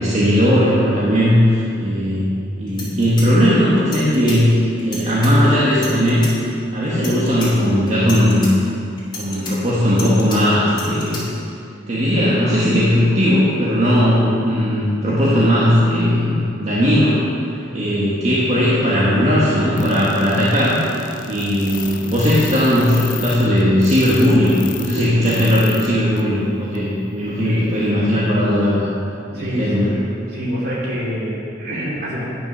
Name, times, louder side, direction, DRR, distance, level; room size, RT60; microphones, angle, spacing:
voice 1, 0.0-2.3 2.6-4.5 4.8-6.2 6.7-8.5 9.2-11.2 11.9-17.2 17.7-20.8 21.2-28.8 29.3-29.9, equal, 35° right, -9 dB, 1.6 m, -17 dB
sound 1, 2.3-2.4 2.7-4.4 4.8-5.3 5.7-6.3 6.9-7.5 7.9-8.5 9.0-10.4 10.7-11.2, left 2 dB, 25° left, 2.8 m, -32 dB
sound 2, 19.7-25.9 26.2-26.3 26.7-26.8, left 8 dB, 45° left, 0.6 m, -33 dB
voice 2, 29.3-30.0 30.3-32.3, equal, 55° right, -5 dB, 2.8 m, -26 dB
10.5 x 6.2 x 6.1 m, 2.5 s
head